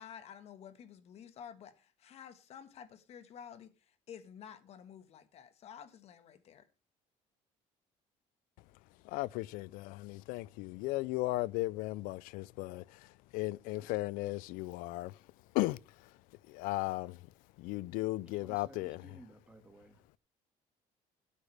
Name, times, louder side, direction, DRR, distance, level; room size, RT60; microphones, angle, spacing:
voice 1, 0.0-6.7, left 8 dB, 50° left, 1.6 m, -51 dB
voice 2, 9.1-12.8 13.3-15.1 15.5-15.8 16.5-17.2 17.6-19.1, left 20 dB, 90° left, 0.5 m, -36 dB
voice 3, 18.3-20.0, right 1 dB, 10° right, 1.8 m, -56 dB
17.0 x 8.4 x 3.4 m
cardioid pair, 145°, 14 cm